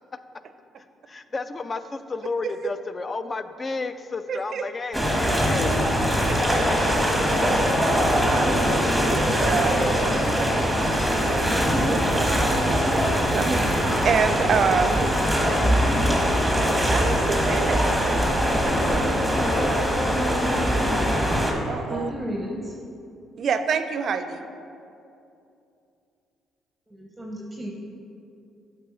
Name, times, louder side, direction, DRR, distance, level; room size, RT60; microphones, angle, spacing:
voice 1, 1.1-5.8 6.1-8.1, left 3 dB, 35° left, 11 dB, 0.3 m, -33 dB
voice 2, 4.3-4.6 6.2-6.6 7.9-10.7 11.3-15.6 16.9-17.8 21.7-22.1 23.4-24.4, right 6 dB, 60° right, 10 dB, 0.4 m, -28 dB
sound 1, 4.9-21.5, equal, 5° left, 1.2 m, -22 dB
voice 3, 21.9-22.7 26.9-27.7, equal, 15° right, -1 dB, 0.7 m, -33 dB
8.1 x 3.8 x 3.8 m, 2.6 s
supercardioid pair, 60°, 0 cm